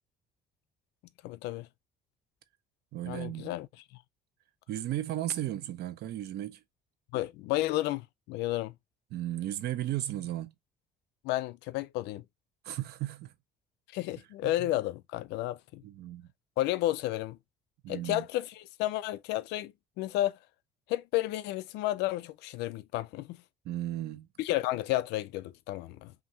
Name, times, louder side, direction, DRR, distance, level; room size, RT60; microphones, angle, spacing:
voice 1, 1.2-1.7 3.1-3.7 3.9-4.0 7.1-8.7 11.2-12.2 13.9-15.8 16.6-17.4 17.9-20.4 20.9-23.4 24.4-26.1, left 16 dB, 90° left, 0.5 m, -32 dB
voice 2, 2.9-3.5 4.7-6.6 9.1-10.5 12.6-13.3 14.4-14.7 15.8-16.3 17.8-18.3 23.7-24.3, right 13 dB, 75° right, 0.8 m, -35 dB
5.7 x 2.6 x 2.7 m
cardioid pair, 110°, 17 cm